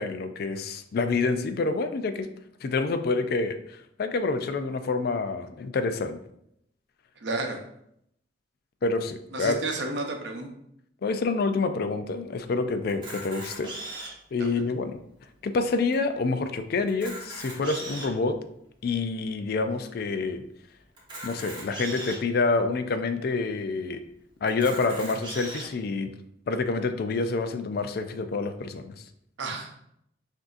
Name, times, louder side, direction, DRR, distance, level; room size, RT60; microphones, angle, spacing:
voice 1, 0.0-2.3 2.6-6.2 8.8-9.5 11.0-13.7 14.3-15.0 15.4-18.4 18.8-20.4 21.2-24.0 24.4-26.1 26.5-29.0, left 3 dB, 60° left, 9 dB, 0.4 m, -27 dB
voice 2, 7.2-7.6 9.3-10.5 14.4-14.5 29.4-29.7, right 2 dB, 80° right, 3 dB, 0.7 m, -31 dB
Camera, 12.9-14.3 14.9-15.0 15.2-15.4 15.9-16.0 16.8-18.2 18.8-18.9 21.0-22.2 22.9-23.0 23.3-23.4 24.5-25.7, right 2 dB, 25° right, 1.1 m, -39 dB
6.0 x 2.7 x 2.5 m, 0.74 s
head